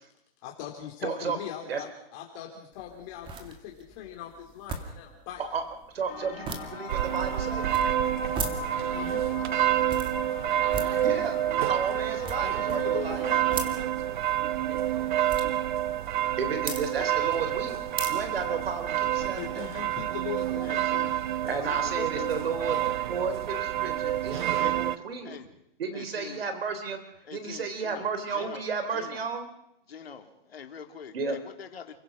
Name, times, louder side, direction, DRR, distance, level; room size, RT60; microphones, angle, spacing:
voice 1, 0.4-5.4 8.9-9.3 12.4-13.8 19.2-21.0, left 10 dB, 35° left, 1 dB, 3.1 m, -40 dB
voice 2, 1.0-1.4 1.7-1.8 5.4-5.6 5.9-7.7 11.0-11.4 11.7-13.3 16.4-19.7 21.5-22.8 23.0-25.4 25.8-27.0 27.3-29.5 31.1-31.4, right 5 dB, 80° right, 9 dB, 3.7 m, -33 dB
sound 1, 2.7-19.2, right 5 dB, 15° right, 2.2 m, -41 dB
sound 2, 6.1-13.8, left 8 dB, 65° left, 3.8 m, -41 dB
sound 3, 6.9-25.0, right 12 dB, 55° right, 1.0 m, -28 dB
voice 3, 20.6-21.2 21.4-22.3 24.1-25.5 25.9-26.5 27.2-28.6 28.9-29.2 29.9-32.0, left 6 dB, 90° left, 5 dB, 2.8 m, -44 dB
29.5 x 16.5 x 6.1 m, 0.79 s
hypercardioid pair, 150°, 29 cm